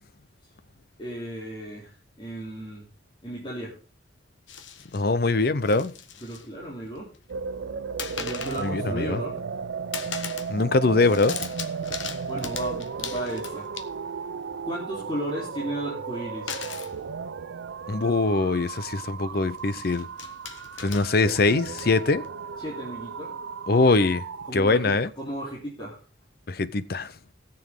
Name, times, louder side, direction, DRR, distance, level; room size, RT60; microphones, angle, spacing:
voice 1, 1.0-1.9 2.2-2.9 3.2-3.7 6.2-7.1 8.1-9.4 12.3-13.7 14.6-16.6 22.6-23.3 24.5-26.0, right 1 dB, 25° left, 3.1 m, -34 dB
sound 1, 4.5-5.0 5.5-6.5 6.8-7.3 8.0-8.7 9.1-9.6 9.9-10.6 10.8-14.2 16.5-16.9 17.9-18.0 18.3-18.5 19.6-22.3, left 7 dB, 85° left, 1.2 m, -39 dB
voice 2, 4.9-5.9 8.6-9.2 10.5-11.4 17.9-20.1 20.8-22.2 23.7-24.2 24.5-25.1 26.5-27.1, left 3 dB, 50° left, 0.6 m, -22 dB
sound 2, 7.3-24.5, right 5 dB, 80° right, 0.5 m, -35 dB
19.0 x 7.0 x 3.6 m
head